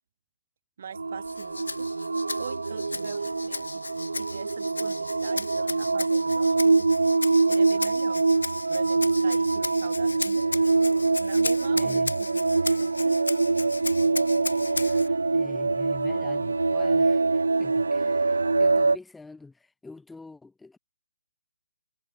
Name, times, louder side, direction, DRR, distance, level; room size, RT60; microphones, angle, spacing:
voice 1, 0.8-1.9 2.4-3.8 4.1-6.9 7.5-8.2 8.7-10.5 11.2-13.2, right 8 dB, 55° right, 5.0 m, -42 dB
sound 1, 0.9-19.0, right 3 dB, 80° right, 0.4 m, -24 dB
Rattle (instrument), 1.2-15.1, left 3 dB, 80° left, 3.0 m, -36 dB
voice 2, 11.7-12.1 14.7-20.8, left 3 dB, 5° left, 2.9 m, -46 dB
figure-of-eight pair, 140°, 0 cm